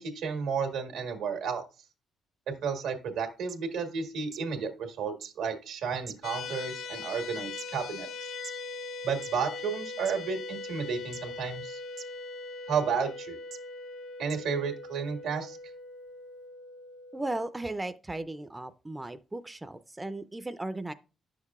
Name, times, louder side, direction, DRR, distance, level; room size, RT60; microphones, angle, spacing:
voice 1, 0.0-1.6 2.5-8.1 9.0-11.8 12.7-13.4 14.2-15.6, right 6 dB, 90° right, 1.5 m, -32 dB
sound 1, 3.2-3.3 3.5-3.6 4.3-4.4 5.2-5.3 6.1-6.5 7.2-7.7 8.4-8.5 9.1-9.3 10.1-10.2 11.1-11.4 12.0-12.1 12.9-13.0 13.5-13.6 14.3-14.4 15.2-15.3, right 7 dB, 65° right, 0.6 m, -44 dB
sound 2, 6.2-17.4, left 3 dB, 65° left, 0.5 m, -41 dB
voice 2, 17.1-20.9, right 2 dB, 15° right, 0.4 m, -36 dB
9.3 x 6.5 x 2.4 m
cardioid pair, 90°, 0 cm